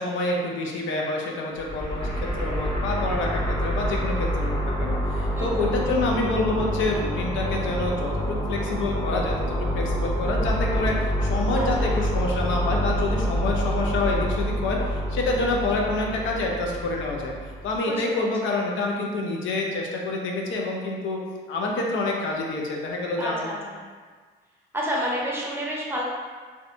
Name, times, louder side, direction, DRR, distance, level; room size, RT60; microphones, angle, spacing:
voice 1, 0.0-17.3 17.6-21.2 21.5-23.5, left 2 dB, 75° left, -1 dB, 0.5 m, -27 dB
sound 1, 1.6-17.8, equal, 25° left, 0.9 m, -27 dB
voice 2, 5.4-5.7 11.6-12.0 17.9-18.3 23.2-23.8 24.7-26.0, equal, 10° right, -4 dB, 0.6 m, -30 dB
2.6 x 2.2 x 2.5 m, 1.5 s
cardioid pair, 90°, 20 cm